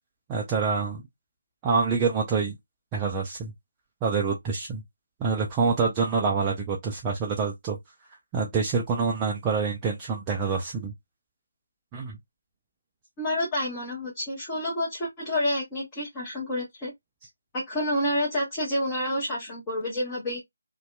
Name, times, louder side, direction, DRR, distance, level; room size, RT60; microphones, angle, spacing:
voice 1, 0.3-1.0 1.6-2.6 2.9-3.5 4.0-4.8 5.2-7.8 8.3-10.9 11.9-12.2, right 5 dB, 15° right, 0.4 m, -26 dB
voice 2, 13.2-16.9 17.5-20.4, left 1 dB, 15° left, 0.9 m, -29 dB
2.6 x 2.2 x 2.2 m
figure-of-eight pair, 150°, 0 cm